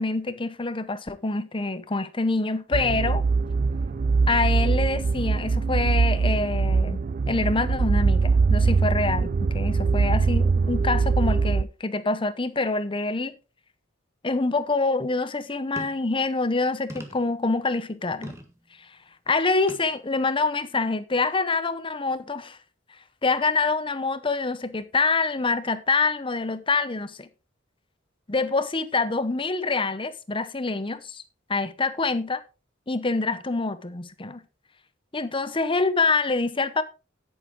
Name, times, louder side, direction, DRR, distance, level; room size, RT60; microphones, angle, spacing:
voice 1, 0.0-3.2 4.3-13.3 14.2-18.3 19.3-22.6 23.2-27.3 28.3-31.2 31.5-32.4 32.9-34.4 35.1-36.8, left 3 dB, 25° left, 0.8 m, -26 dB
sound 1, 2.7-11.6, right 4 dB, 45° right, 0.4 m, -22 dB
sound 2, 15.8-16.1 16.9-17.4 18.2-18.6 19.7-19.9 20.6-20.7, equal, 15° right, 1.7 m, -40 dB
9.9 x 9.4 x 3.7 m
head